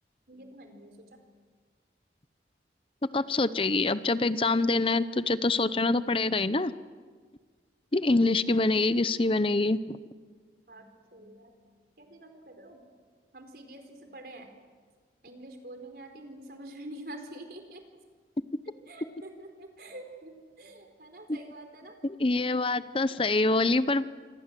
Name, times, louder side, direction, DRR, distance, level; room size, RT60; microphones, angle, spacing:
voice 1, 0.3-1.2 10.7-10.8 11.1-11.5 12.0-12.8 13.3-14.5 15.2-17.8 18.9-20.3 20.6-22.0, right 1 dB, 55° right, 5 dB, 4.4 m, -46 dB
voice 2, 3.1-6.7 7.9-10.0 21.3-21.4 22.0-24.0, left 2 dB, 30° left, 14 dB, 0.8 m, -25 dB
27.0 x 25.5 x 7.6 m, 1.5 s
head